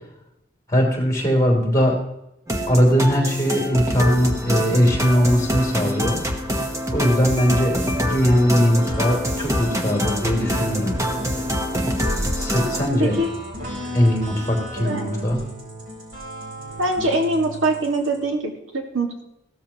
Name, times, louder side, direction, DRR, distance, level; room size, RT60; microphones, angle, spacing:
voice 1, 0.7-1.9 2.7-6.2 6.9-10.9 12.4-13.2 13.9-15.4, equal, 15° left, -1 dB, 3.2 m, -20 dB
sound 1, 2.5-12.9, equal, 15° right, 1.1 m, -25 dB
sound 2, 8.7-18.2, equal, 50° right, 3.9 m, -35 dB
voice 2, 16.8-19.2, right 2 dB, 90° right, 3 dB, 2.0 m, -23 dB
16.0 x 13.5 x 3.0 m, 0.84 s
head